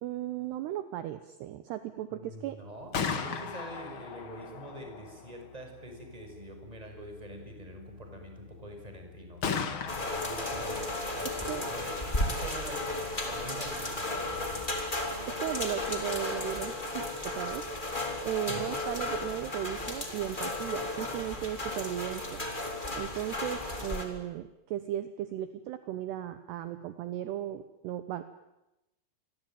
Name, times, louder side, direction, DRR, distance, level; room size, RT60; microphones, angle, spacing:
voice 1, 0.0-2.6 11.3-11.7 15.3-17.6 18.2-22.4 23.0-28.2, right 12 dB, 70° right, 11 dB, 2.9 m, -36 dB
voice 2, 2.1-11.9 12.3-12.8 13.3-14.6 18.5-18.7, right 1 dB, 10° right, 4 dB, 5.6 m, -45 dB
Gunshot gunfire, 2.7-16.5, left 6 dB, 80° left, 1.1 m, -41 dB
sound 1, 9.9-24.1, left 2 dB, 10° left, 3.1 m, -34 dB
28.0 x 23.0 x 9.1 m, 0.93 s
omnidirectional pair, 5.4 m